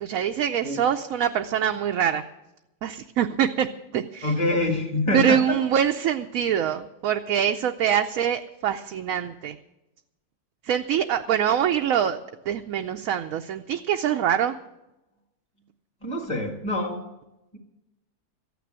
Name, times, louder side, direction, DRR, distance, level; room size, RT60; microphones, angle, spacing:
voice 1, 0.0-2.2 2.8-3.7 3.9-4.3 5.1-9.6 10.6-12.2 12.5-14.6, right 9 dB, 70° right, 6 dB, 1.0 m, -24 dB
voice 2, 4.2-5.6 16.0-17.0, left 2 dB, 20° left, 0 dB, 1.7 m, -26 dB
14.0 x 9.3 x 7.5 m, 0.94 s
omnidirectional pair, 1.6 m